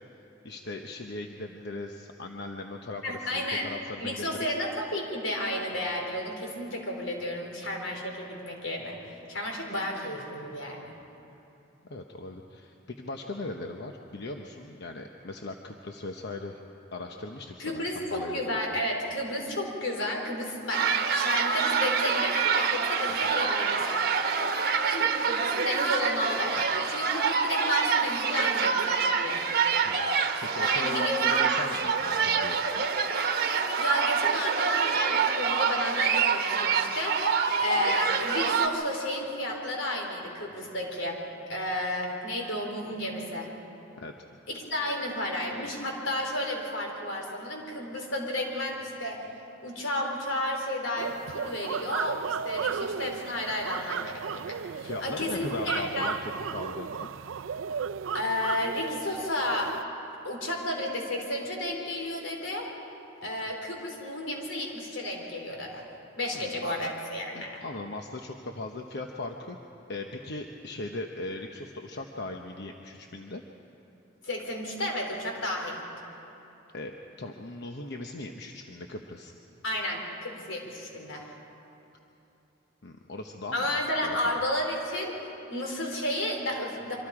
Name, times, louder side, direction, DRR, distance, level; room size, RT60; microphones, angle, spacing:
voice 1, 0.4-4.4 11.9-16.6 16.9-18.6 29.8-30.1 30.4-32.9 44.0-44.1 52.6-52.7 54.8-57.1 66.3-66.9 67.3-69.6 69.9-73.4 76.7-79.3 82.8-84.3, left 2 dB, 60° left, 3 dB, 1.0 m, -39 dB
voice 2, 3.0-3.7 4.0-10.9 17.6-23.8 24.7-29.4 30.6-31.5 33.8-41.2 41.5-43.5 44.5-49.2 49.6-56.2 58.1-59.8 60.2-62.7 63.2-65.8 66.2-67.6 74.2-75.8 79.6-81.3 83.5-85.1 85.5-87.0, left 1 dB, 85° left, 0 dB, 4.2 m, -32 dB
sound 1, 20.7-38.7, right 6 dB, 55° right, 1.2 m, -26 dB
sound 2, 51.0-59.8, right 7 dB, 90° right, 0.4 m, -35 dB
26.0 x 24.5 x 4.9 m, 2.9 s
head